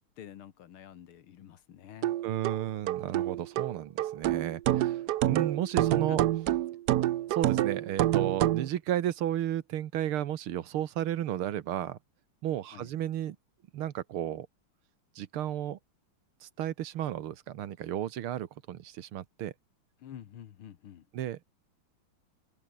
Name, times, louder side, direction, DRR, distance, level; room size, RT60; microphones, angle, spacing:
voice 1, 0.2-2.1 6.1-6.2 12.7-12.9 20.0-21.1, left 10 dB, 85° left, 2.2 m, -48 dB
sound 1, 2.0-8.7, right 13 dB, 65° right, 1.1 m, -27 dB
voice 2, 2.2-6.2 7.3-12.0 12.4-13.4 13.7-14.5 15.2-15.8 16.4-19.5 21.1-21.4, right 11 dB, 90° right, 2.0 m, -33 dB
open air
omnidirectional pair, 2.3 m